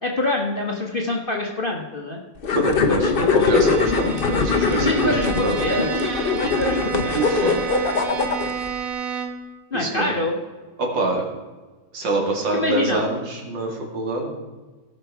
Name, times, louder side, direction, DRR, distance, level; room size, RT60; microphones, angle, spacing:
voice 1, 0.0-2.2 3.0-3.4 4.7-6.1 6.4-7.6 9.7-10.4 12.5-13.0, left 2 dB, 35° left, -1 dB, 1.0 m, -25 dB
sound 1, 2.4-8.7, left 5 dB, 50° left, 0.6 m, -22 dB
voice 2, 2.5-5.7 7.1-7.6 9.7-10.1 10.8-11.2 11.9-14.3, right 2 dB, 65° right, 0 dB, 2.8 m, -25 dB
Bowed string instrument, 3.1-9.5, right 6 dB, 50° right, 1.3 m, -31 dB
17.0 x 5.7 x 4.7 m, 1.3 s
omnidirectional pair, 2.1 m